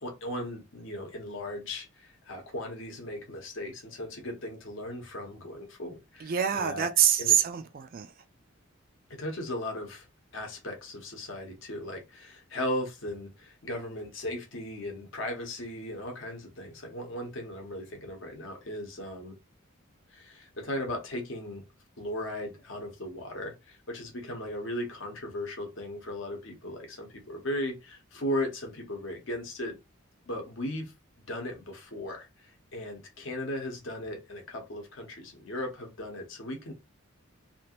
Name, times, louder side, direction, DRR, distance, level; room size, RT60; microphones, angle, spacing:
voice 1, 0.0-6.9 7.2-7.4 9.2-10.1 10.3-19.3 20.1-21.6 22.0-29.8 30.3-30.9 31.3-36.7, left 1 dB, 55° left, 1.0 m, -37 dB
voice 2, 6.2-8.1, right 9 dB, 40° right, 0.3 m, -25 dB
3.0 x 2.4 x 2.8 m
head